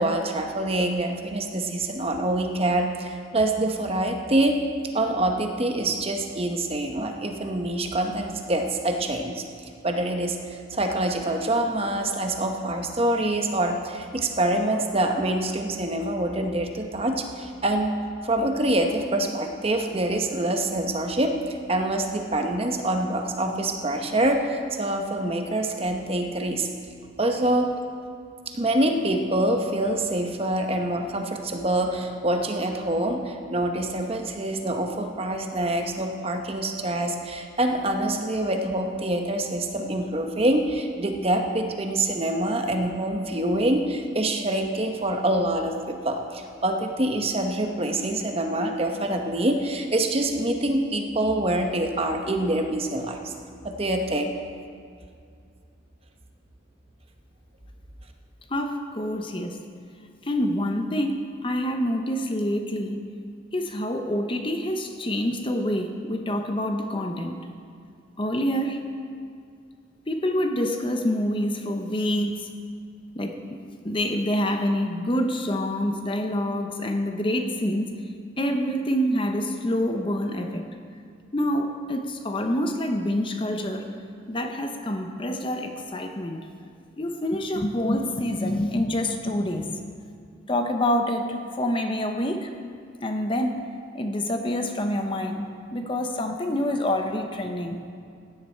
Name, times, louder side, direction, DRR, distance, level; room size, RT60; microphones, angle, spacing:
voice 1, 0.0-4.6 4.9-9.4 9.8-10.4 10.7-17.9 18.2-26.7 27.2-27.7 28.5-53.3 53.6-54.3, right 1 dB, 30° right, 4 dB, 0.9 m, -25 dB
voice 2, 58.5-59.6 60.2-63.0 63.5-67.4 68.2-68.8 70.1-72.5 73.1-73.4 73.8-77.9 78.4-80.7 81.3-83.9 84.3-86.4 87.0-89.8 90.5-92.5 93.0-93.7 93.9-97.8, left 1 dB, 25° left, 5 dB, 0.7 m, -26 dB
16.0 x 10.0 x 4.4 m, 2.3 s
head